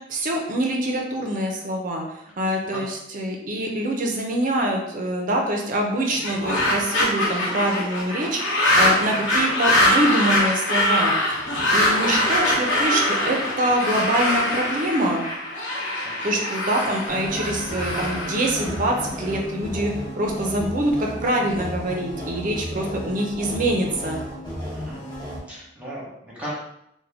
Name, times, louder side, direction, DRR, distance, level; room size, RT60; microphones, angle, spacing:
voice 1, 0.1-15.2 16.2-24.2, right 1 dB, 45° right, 1 dB, 0.5 m, -25 dB
sound 1, 6.1-19.3, left 1 dB, 65° left, 1.0 m, -23 dB
voice 2, 16.0-16.3 24.7-25.0 25.5-26.5, right 1 dB, 5° right, -7 dB, 1.0 m, -36 dB
sound 2, 17.1-25.4, equal, 20° left, 1.0 m, -33 dB
3.4 x 2.2 x 3.4 m, 0.79 s
head